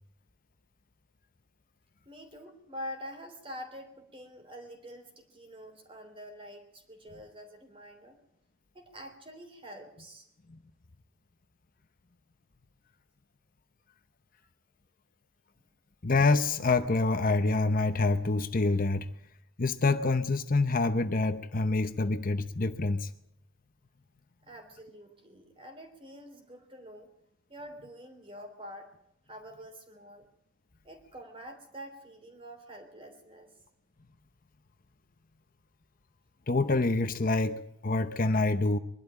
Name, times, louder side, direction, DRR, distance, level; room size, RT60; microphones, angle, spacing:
voice 1, 2.0-8.2 8.7-10.3 24.4-27.1 27.5-28.9 29.3-30.3 30.8-33.5, equal, 25° right, 6 dB, 3.2 m, -46 dB
voice 2, 16.0-19.1 19.6-23.1 36.5-38.8, left 3 dB, 40° left, 10 dB, 0.8 m, -26 dB
22.5 x 12.0 x 9.9 m, 0.77 s
head